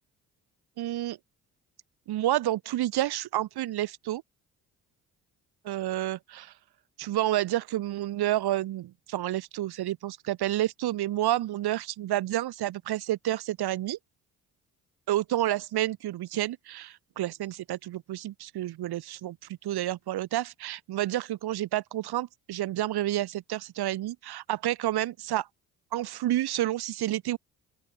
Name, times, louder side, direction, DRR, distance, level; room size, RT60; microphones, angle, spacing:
voice 1, 0.8-1.2 2.1-4.2 5.7-6.5 7.0-14.0 15.1-19.4 19.6-25.5 25.9-27.4, right 14 dB, 65° right, 1.8 m, -29 dB
open air
hypercardioid pair, 45°, 40 cm